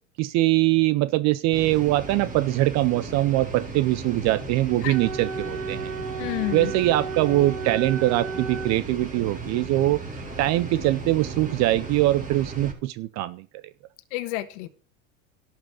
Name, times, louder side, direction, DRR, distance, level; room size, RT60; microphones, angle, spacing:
voice 1, 0.2-5.9 6.5-10.0 10.4-13.5, right 17 dB, 40° right, 16 dB, 0.6 m, -22 dB
sound 1, 1.5-12.7, right 3 dB, 20° right, 4.3 m, -36 dB
Wind instrument woodwind instrument, 4.9-8.8, right 5 dB, 85° right, 2.7 m, -33 dB
voice 2, 6.2-6.7 14.1-14.7, left 18 dB, 60° left, 10 dB, 1.4 m, -29 dB
12.0 x 5.6 x 7.0 m, 0.40 s
hypercardioid pair, 105°, 40 cm